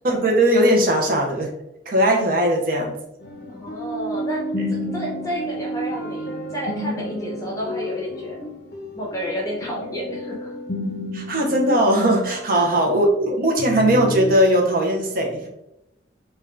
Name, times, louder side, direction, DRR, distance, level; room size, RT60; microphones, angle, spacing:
voice 1, 0.0-1.5 1.9-2.9 11.1-15.5, right 1 dB, 50° right, 0 dB, 0.5 m, -19 dB
sound 1, 3.2-13.3 13.6-14.4, left 1 dB, 55° left, 0.5 m, -31 dB
voice 2, 3.5-4.4 4.9-8.5 8.9-10.5 12.5-13.0, equal, 20° left, -3 dB, 0.7 m, -31 dB
3.3 x 2.2 x 2.4 m, 0.87 s
head